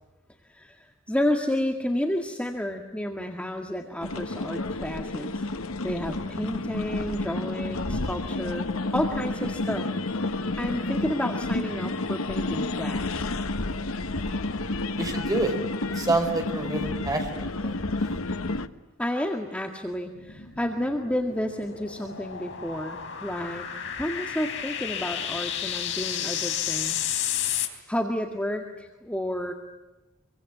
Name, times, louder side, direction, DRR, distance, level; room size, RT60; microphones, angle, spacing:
voice 1, 0.4-5.4 5.8-8.7 8.9-9.9 10.6-13.3 19.0-23.7 24.0-27.1 27.3-29.5, left 1 dB, 5° left, 3 dB, 1.9 m, -31 dB
sound 1, 4.0-18.7, left 2 dB, 85° left, 1.3 m, -30 dB
voice 2, 15.0-15.6 15.9-17.7, right 2 dB, 20° right, 4 dB, 4.9 m, -27 dB
sound 2, 20.2-27.7, left 9 dB, 65° left, 3.7 m, -32 dB
26.5 x 24.0 x 9.2 m, 1.0 s
head